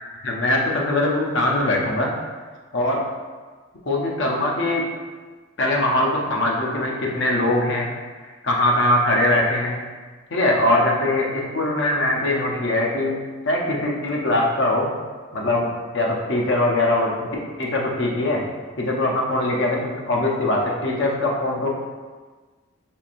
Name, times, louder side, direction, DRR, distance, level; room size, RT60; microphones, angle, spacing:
voice 1, 0.1-2.1 2.7-3.0 3.9-4.8 5.6-7.9 8.4-9.9 10.3-13.1 13.4-14.9 15.3-15.7 15.9-17.3 17.6-18.4 18.8-21.7, left 1 dB, 60° left, -1 dB, 0.7 m, -21 dB
4.6 x 3.2 x 2.5 m, 1.4 s
head